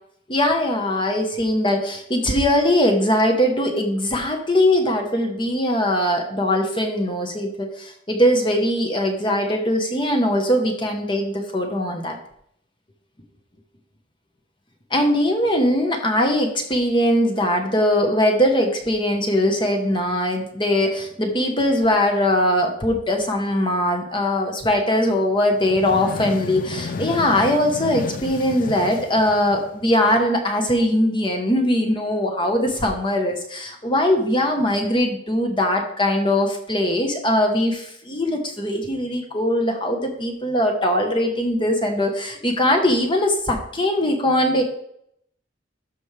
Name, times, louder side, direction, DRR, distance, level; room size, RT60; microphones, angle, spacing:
voice 1, 0.3-12.2 14.9-44.6, left 1 dB, 25° left, 3 dB, 1.2 m, -21 dB
sound 1, 25.5-30.1, left 4 dB, 45° left, 0.4 m, -32 dB
13.0 x 5.3 x 3.4 m, 0.70 s
head